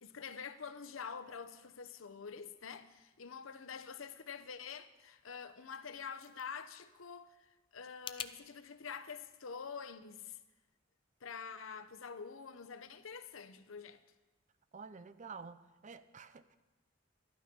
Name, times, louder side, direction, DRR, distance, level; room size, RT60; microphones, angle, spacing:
voice 1, 0.0-10.4 11.2-14.0, left 6 dB, 75° left, 0.8 m, -47 dB
sound 1, 5.7-8.4, left 7 dB, 25° left, 0.5 m, -49 dB
voice 2, 14.7-16.6, right 5 dB, 40° right, 0.6 m, -50 dB
12.5 x 12.0 x 5.2 m
head